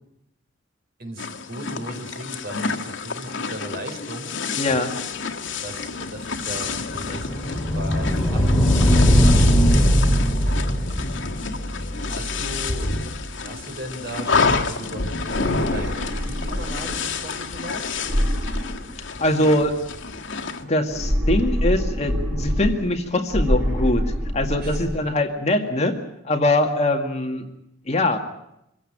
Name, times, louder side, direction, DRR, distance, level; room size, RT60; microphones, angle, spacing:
voice 1, 1.0-4.3 4.6-4.9 5.6-9.9 10.6-11.0 12.1-12.9 13.4-17.9 24.6-24.9, right 1 dB, 50° right, 4 dB, 4.8 m, -37 dB
sound 1, 1.2-20.6, left 4 dB, 75° left, 1.7 m, -29 dB
voice 2, 4.6-4.9 19.2-19.8 20.6-26.0 26.2-27.5 27.9-28.2, left 1 dB, 35° left, 4 dB, 2.1 m, -22 dB
sound 2, 6.2-13.1, equal, 5° left, 3.2 m, -20 dB
sound 3, 15.2-17.1 18.0-19.4 20.8-23.0 23.3-25.0, equal, 80° right, 6.0 m, -25 dB
26.0 x 16.0 x 8.8 m, 0.81 s
head